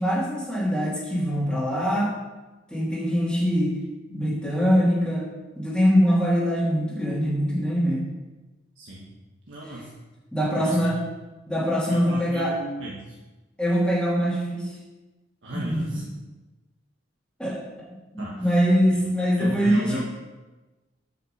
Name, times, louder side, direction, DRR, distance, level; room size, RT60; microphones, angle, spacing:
voice 1, 0.0-2.1 2.7-3.8 4.1-5.2 5.6-8.1 9.6-9.8 10.3-11.0 11.5-12.6 13.6-14.7 15.5-16.1 17.4-17.6 18.1-20.0, equal, 5° left, -8 dB, 2.3 m, -23 dB
voice 2, 8.8-9.1 9.5-9.9 10.6-10.8 11.9-13.1 15.4-16.0 18.2-18.4 19.4-20.0, right 1 dB, 75° right, -4 dB, 1.5 m, -35 dB
7.5 x 5.7 x 6.6 m, 1.2 s
head